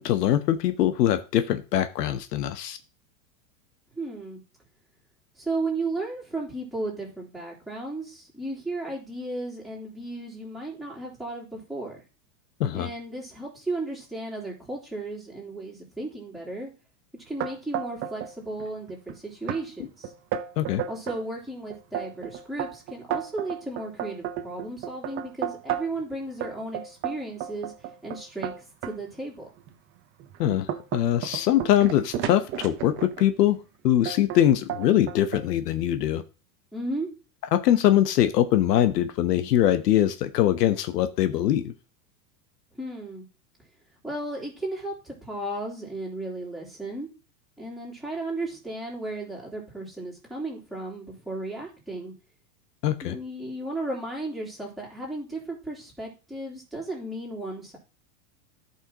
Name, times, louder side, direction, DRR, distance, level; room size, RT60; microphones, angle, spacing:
voice 1, 0.0-2.8 12.6-12.9 20.6-20.8 30.4-30.7 30.9-33.6 33.8-36.2 37.5-41.7 52.8-53.2, left 12 dB, 75° left, 10 dB, 1.1 m, -22 dB
voice 2, 3.9-4.4 5.4-12.0 12.7-16.7 17.3-20.1 20.9-27.7 28.0-29.5 36.7-37.1 42.7-43.3 44.0-47.1 47.6-52.1 53.0-57.8, right 2 dB, ahead, -5 dB, 3.3 m, -34 dB
sound 1, 17.4-18.3 18.6-19.1 19.5-19.6 20.0-21.2 21.7-26.0 26.4-29.0 29.6-29.7 30.2-33.3 34.1-34.4 34.7-35.5, right 10 dB, 25° right, 0.8 m, -32 dB
14.0 x 5.7 x 2.9 m, 0.33 s
supercardioid pair, 145°, 48 cm